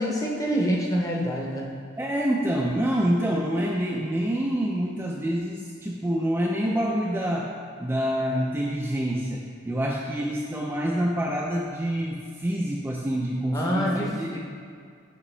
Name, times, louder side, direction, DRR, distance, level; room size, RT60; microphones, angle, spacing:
voice 1, 0.0-1.7 13.5-14.4, equal, 15° left, -2 dB, 0.7 m, -26 dB
voice 2, 2.0-7.5 7.8-14.3, equal, 10° right, -3 dB, 0.3 m, -27 dB
7.3 x 5.5 x 3.3 m, 2.2 s
head